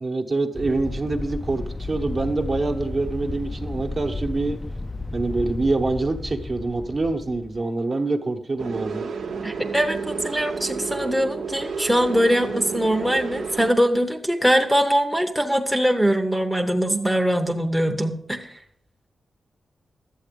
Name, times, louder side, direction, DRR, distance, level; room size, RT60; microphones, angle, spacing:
voice 1, 0.0-4.6 5.1-9.1, right 3 dB, 35° right, 3 dB, 1.0 m, -25 dB
sound 1, 0.5-7.6, left 2 dB, 15° left, 0.4 m, -33 dB
sound 2, 8.6-13.7, right 5 dB, 75° right, 0.9 m, -31 dB
voice 2, 9.4-18.5, equal, ahead, 3 dB, 0.8 m, -22 dB
12.0 x 8.3 x 5.2 m, 0.69 s
wide cardioid pair, 140°, 0 cm